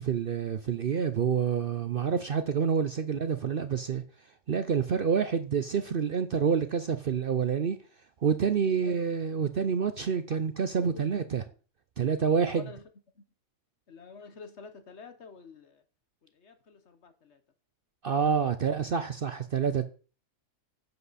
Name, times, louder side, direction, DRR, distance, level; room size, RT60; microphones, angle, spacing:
voice 1, 0.0-4.0 4.5-7.8 8.2-11.4 12.0-12.6 18.0-19.9, right 7 dB, 50° right, 0.7 m, -28 dB
voice 2, 10.9-11.3 12.5-12.8 13.1-13.3 13.9-15.8 16.2-17.4 18.4-18.7, left 4 dB, 55° left, 1.3 m, -49 dB
10.5 x 7.8 x 4.1 m
omnidirectional pair, 1.5 m